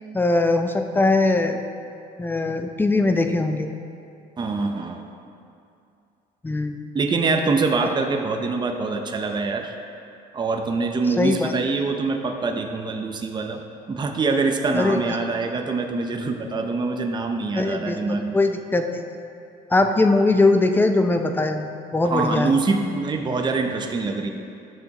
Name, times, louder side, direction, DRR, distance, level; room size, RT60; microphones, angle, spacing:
voice 1, 0.1-1.6 2.2-3.7 6.4-6.9 11.2-11.5 14.7-15.0 17.6-19.1 19.7-22.5, left 2 dB, 10° left, 6 dB, 0.5 m, -21 dB
voice 2, 4.4-5.0 6.9-9.7 10.3-13.6 13.9-18.4 22.1-24.3, right 3 dB, 25° right, 4 dB, 0.7 m, -24 dB
12.0 x 6.9 x 2.9 m, 2.6 s
cardioid pair, 110°, 17 cm